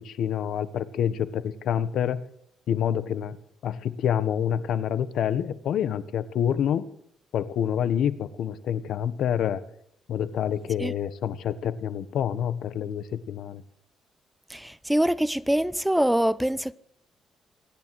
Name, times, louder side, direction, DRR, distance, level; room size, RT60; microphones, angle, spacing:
voice 1, 0.0-2.2 2.7-3.4 3.6-6.8 7.3-9.6 10.1-13.6, left 9 dB, 75° left, 1.4 m, -27 dB
voice 2, 14.5-16.7, right 1 dB, 5° right, 0.8 m, -24 dB
26.5 x 10.5 x 4.9 m
cardioid pair, 90°, 0 cm